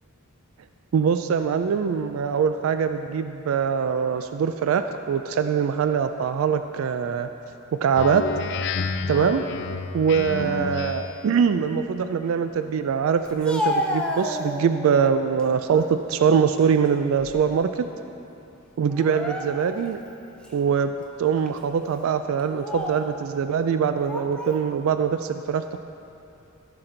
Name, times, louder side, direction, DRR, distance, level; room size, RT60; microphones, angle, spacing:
voice 1, 0.9-7.3 7.8-8.2 9.1-9.4 9.9-17.9 18.8-20.0 20.5-20.9 21.2-25.8, right 7 dB, 70° right, 9 dB, 0.3 m, -23 dB
Speech synthesizer, 7.9-11.3, left 4 dB, 55° left, 0.4 m, -30 dB
Speech, 13.2-14.9 15.4-16.0 16.4-17.6 17.9-18.1 18.9-19.9 20.4-20.6 21.4-21.6 22.4-23.1 23.9-24.6, left 1 dB, 5° left, 0.6 m, -31 dB
15.0 x 5.9 x 3.9 m, 2.8 s
head